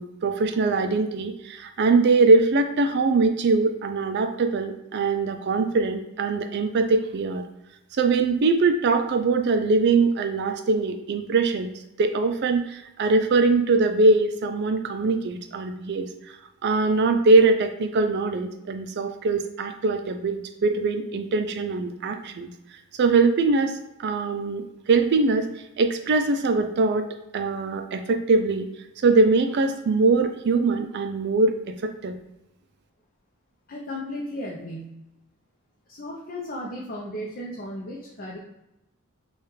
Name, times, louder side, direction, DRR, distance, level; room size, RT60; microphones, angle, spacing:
voice 1, 0.0-7.4 7.9-11.7 12.0-16.1 16.6-22.5 23.0-25.5 25.8-28.7 29.0-32.1, right 3 dB, 50° right, 7 dB, 0.4 m, -22 dB
voice 2, 33.7-35.0 35.9-38.4, left 1 dB, 45° left, -4 dB, 0.7 m, -35 dB
6.5 x 2.4 x 3.1 m, 0.89 s
head